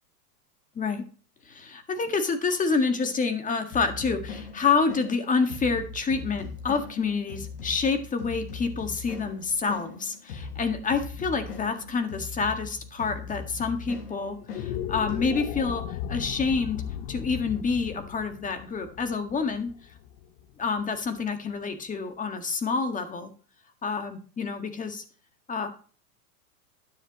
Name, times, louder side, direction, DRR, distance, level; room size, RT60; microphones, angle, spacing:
voice 1, 1.5-16.8 17.1-19.7 20.6-23.3 23.8-25.0 25.5-25.7, left 4 dB, 15° left, 7 dB, 1.7 m, -28 dB
sound 1, 3.7-15.6, left 4 dB, 80° left, 5.3 m, -40 dB
sound 2, 14.4-20.8, left 10 dB, 45° left, 0.9 m, -36 dB
12.5 x 9.4 x 3.0 m, 0.40 s
supercardioid pair, 130°, 47 cm